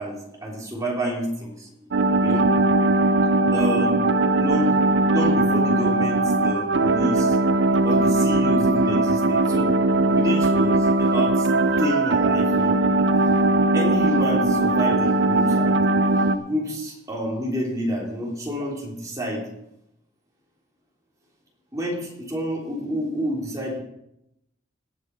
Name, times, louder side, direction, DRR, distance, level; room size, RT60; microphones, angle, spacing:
voice 1, 0.0-1.7 2.2-2.5 3.4-3.9 4.3-7.4 7.8-9.7 10.0-11.5 11.8-12.8 13.7-15.8 16.4-19.4 21.7-23.8, equal, 20° right, -3 dB, 3.4 m, -28 dB
sound 1, 1.9-16.4, right 2 dB, 70° right, 0.6 m, -20 dB
18.5 x 6.5 x 4.8 m, 0.79 s
head